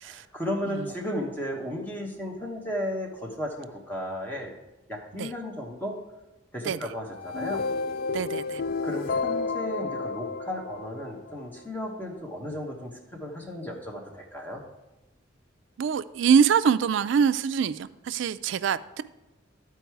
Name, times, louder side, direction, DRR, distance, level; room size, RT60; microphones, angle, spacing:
voice 1, 0.0-4.5 4.9-6.0 6.5-7.6 8.8-14.6, equal, 10° left, 1.1 m, -34 dB
sound 1, 7.1-11.4, left 4 dB, 50° left, 0.3 m, -31 dB
voice 2, 8.1-8.6 15.8-19.0, right 7 dB, 70° right, 0.3 m, -24 dB
11.5 x 4.6 x 4.7 m
head